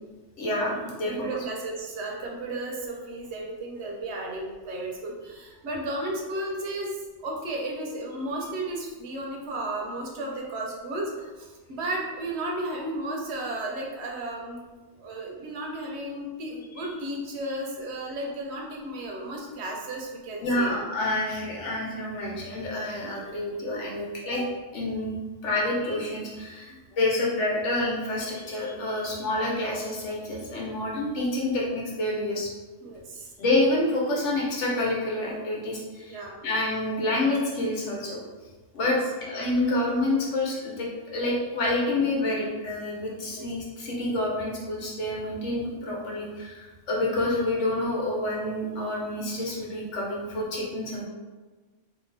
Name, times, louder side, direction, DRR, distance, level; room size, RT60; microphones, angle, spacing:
voice 1, 0.4-1.3 16.8-16.9 20.4-24.4 24.7-25.1 25.4-32.5 33.4-38.2 38.7-51.1, left 2 dB, 85° left, -3 dB, 1.2 m, -28 dB
voice 2, 1.0-6.9 7.2-14.6 15.0-20.7 24.3-24.4 26.7-26.8 32.8-33.3 36.1-36.4 38.8-39.0 43.2-43.5 47.0-47.2, right 1 dB, 70° right, -1 dB, 0.9 m, -34 dB
2.8 x 2.4 x 3.9 m, 1.3 s
omnidirectional pair, 1.2 m